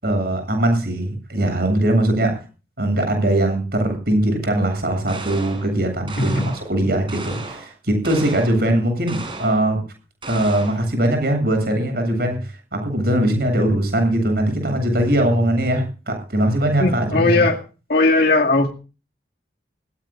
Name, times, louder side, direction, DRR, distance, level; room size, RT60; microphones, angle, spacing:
voice 1, 0.0-2.4 2.8-9.8 10.3-17.4, right 1 dB, 55° right, 7.9 m, -21 dB
sound 1, 5.1-5.7 6.1-6.7 7.1-7.7 8.0-8.6 9.1-9.6 10.2-10.9, right 3 dB, 25° right, 6.9 m, -35 dB
voice 2, 6.2-6.5 16.8-17.6 17.9-18.7, left 2 dB, 55° left, 2.3 m, -18 dB
21.5 x 18.5 x 2.5 m
head